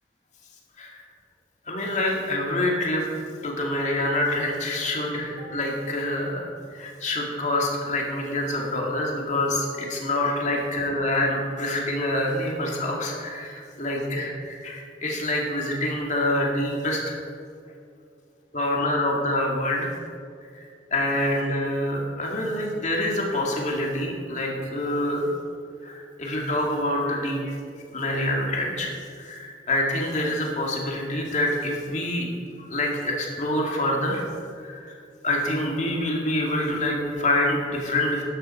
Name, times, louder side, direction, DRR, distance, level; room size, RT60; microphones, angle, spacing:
voice 1, 1.7-3.1 3.4-17.1 18.5-19.9 20.5-20.6 20.9-25.3 25.8-32.3 32.6-34.2 34.5-35.0 35.2-38.2, left 1 dB, 45° left, -1 dB, 2.3 m, -26 dB
12.0 x 11.5 x 4.5 m, 2.3 s
head